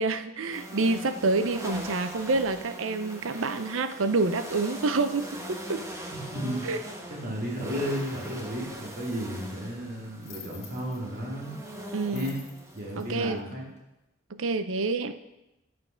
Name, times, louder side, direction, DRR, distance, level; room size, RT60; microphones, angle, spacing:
voice 1, 0.0-5.8 6.6-6.8 11.9-12.4 13.0-13.5 14.3-15.1, right 3 dB, 75° right, 11 dB, 0.6 m, -28 dB
sound 1, 0.5-13.3, equal, 15° right, 1.1 m, -41 dB
voice 2, 6.1-6.7 7.1-11.6 12.1-12.4 12.7-13.6, equal, 50° right, -3 dB, 2.5 m, -33 dB
sound 2, 8.9-9.0 10.2-11.2 12.0-13.9, left 6 dB, 35° left, 1.9 m, -49 dB
9.5 x 6.6 x 5.7 m, 0.94 s
head